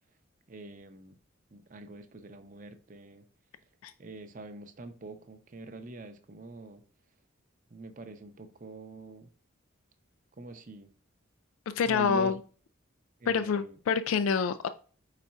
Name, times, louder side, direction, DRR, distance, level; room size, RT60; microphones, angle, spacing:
voice 1, 0.5-1.1 1.5-3.3 4.0-6.8 7.7-9.3 10.4-10.9 11.9-12.4 13.2-13.8, right 3 dB, 40° right, 0.5 m, -44 dB
voice 2, 11.8-12.4 13.3-14.7, left 6 dB, 90° left, 0.3 m, -27 dB
5.3 x 4.1 x 2.3 m
head